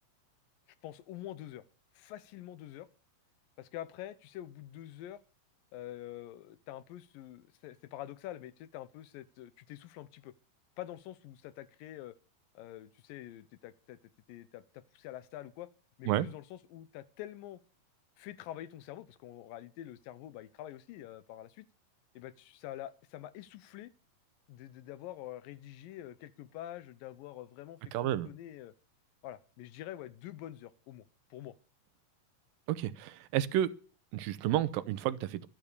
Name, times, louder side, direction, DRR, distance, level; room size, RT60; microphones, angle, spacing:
voice 1, 0.8-1.6 1.9-2.9 3.6-5.2 5.7-10.3 10.8-12.2 12.5-14.0 14.3-15.7 16.0-17.6 18.2-21.7 22.2-23.9 24.5-28.7 29.2-31.1 31.3-31.6, left 13 dB, 85° left, 2.5 m, -46 dB
voice 2, 27.9-28.3 32.7-33.7 34.1-35.5, right 12 dB, 85° right, 2.6 m, -31 dB
12.0 x 12.0 x 6.7 m
omnidirectional pair, 4.0 m